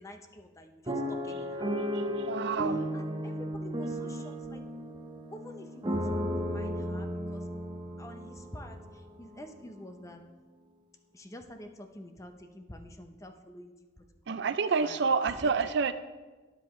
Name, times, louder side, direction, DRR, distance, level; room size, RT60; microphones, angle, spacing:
voice 1, 0.0-1.8 2.3-4.6 5.3-7.4 8.0-10.2 11.1-14.4 14.8-15.8, left 1 dB, 15° left, 6 dB, 0.7 m, -48 dB
sound 1, 0.9-9.0 9.6-9.7 9.9-10.2, equal, 25° right, 0.9 m, -34 dB
voice 2, 2.3-2.8 14.3-15.9, right 5 dB, 60° right, 12 dB, 0.4 m, -28 dB
12.5 x 9.2 x 3.1 m, 1.3 s
head